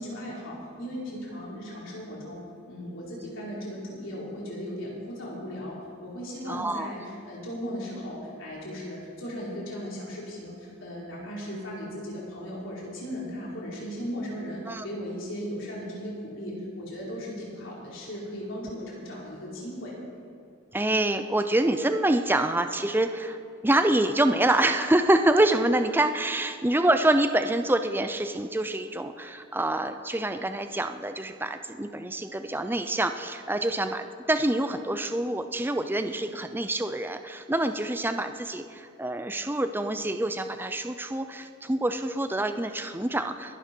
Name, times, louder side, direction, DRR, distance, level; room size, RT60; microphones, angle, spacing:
voice 1, 0.0-2.4 2.7-19.9, equal, 60° left, -5 dB, 4.3 m, -37 dB
voice 2, 6.5-6.9 14.7-14.8 20.7-23.4 23.6-43.6, right 1 dB, 10° right, 8 dB, 0.5 m, -26 dB
22.0 x 11.0 x 4.6 m, 2.5 s
head